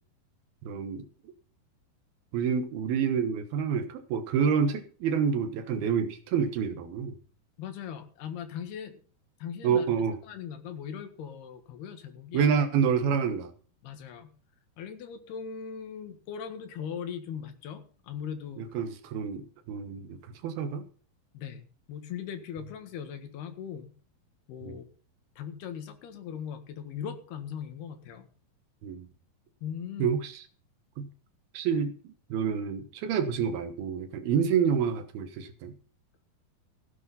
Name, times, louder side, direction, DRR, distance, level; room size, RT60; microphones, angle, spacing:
voice 1, 0.7-1.1 2.3-7.2 9.6-10.2 12.3-13.5 18.6-20.8 24.6-24.7 28.8-29.1 30.0-30.4 31.0-31.1 31.5-35.7, right 7 dB, 70° right, 9 dB, 3.0 m, -28 dB
voice 2, 7.6-9.0 9.4-9.9 10.2-12.6 13.8-14.3 14.8-18.7 21.3-23.9 24.5-24.9 25.4-28.3 29.6-30.1, left 8 dB, 75° left, 7 dB, 3.6 m, -39 dB
16.0 x 10.5 x 4.2 m, 0.43 s
omnidirectional pair, 4.7 m